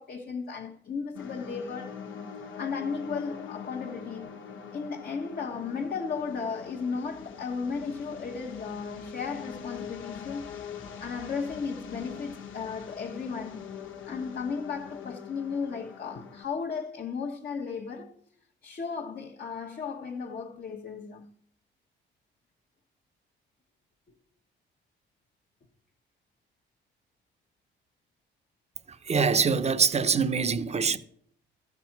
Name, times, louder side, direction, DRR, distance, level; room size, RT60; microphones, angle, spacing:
voice 1, 0.0-2.0 2.6-4.3 4.7-10.5 11.0-13.7 14.1-18.1 18.6-21.3 24.1-24.2, left 5 dB, 50° left, 1.2 m, -35 dB
sound 1, 1.1-16.4, left 7 dB, 85° left, 1.5 m, -43 dB
voice 2, 29.0-31.0, right 5 dB, 35° right, 0.8 m, -24 dB
13.5 x 6.0 x 5.9 m
cardioid pair, 90°, 20 cm